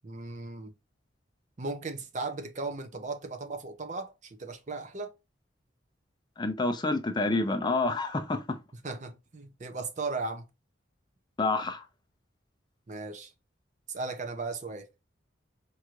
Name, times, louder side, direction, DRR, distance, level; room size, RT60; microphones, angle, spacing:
voice 1, 0.0-0.7 1.6-5.1 8.8-10.5 12.9-13.3 13.9-14.9, right 3 dB, 40° right, 0.6 m, -36 dB
voice 2, 6.4-8.4 11.4-11.8, left 3 dB, 20° left, 0.4 m, -28 dB
4.5 x 3.1 x 2.4 m
head